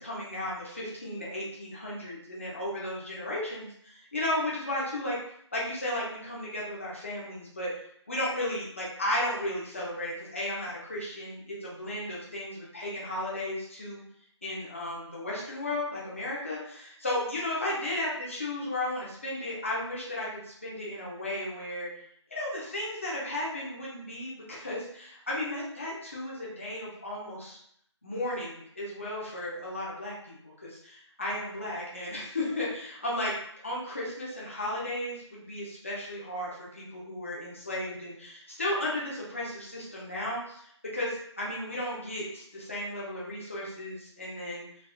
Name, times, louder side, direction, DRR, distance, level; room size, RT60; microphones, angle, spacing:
voice 1, 0.0-5.2 5.5-7.7 8.1-14.0 14.4-21.9 22.3-27.6 28.0-33.4 33.6-44.7, left 1 dB, 25° left, -6 dB, 0.6 m, -34 dB
3.5 x 2.1 x 2.3 m, 0.68 s
figure-of-eight pair, 180°, 15 cm